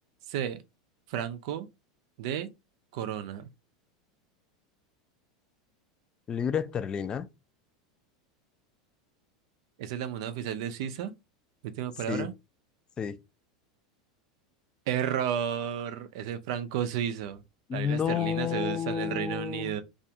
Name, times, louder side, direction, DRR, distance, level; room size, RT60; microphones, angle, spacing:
voice 1, 0.3-0.6 1.1-1.7 2.2-2.5 2.9-3.5 9.8-11.1 11.6-12.3 14.9-17.4 17.7-19.8, right 9 dB, 65° right, 0.4 m, -32 dB
voice 2, 6.3-7.3 12.1-12.3 13.0-13.2 17.7-19.8, left 8 dB, 30° left, 0.3 m, -30 dB
2.4 x 2.3 x 2.7 m
hypercardioid pair, 100°, 3 cm